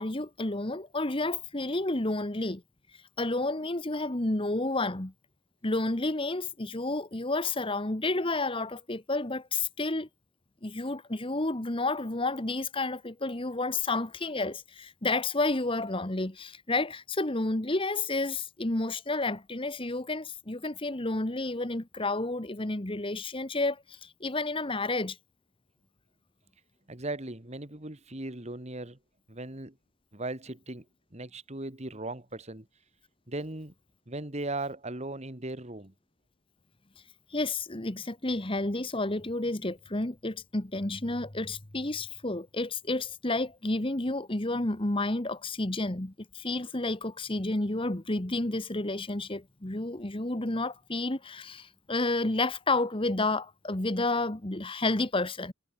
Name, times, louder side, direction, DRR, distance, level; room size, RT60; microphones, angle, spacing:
voice 1, 0.0-2.6 3.2-5.1 5.6-10.1 10.6-25.2 37.3-55.5, left 2 dB, 25° left, 1.3 m, -30 dB
voice 2, 26.9-29.0 29.3-29.7 30.1-30.9 31.1-32.7 33.3-33.7 34.1-35.9, right 2 dB, 30° right, 2.0 m, -37 dB
head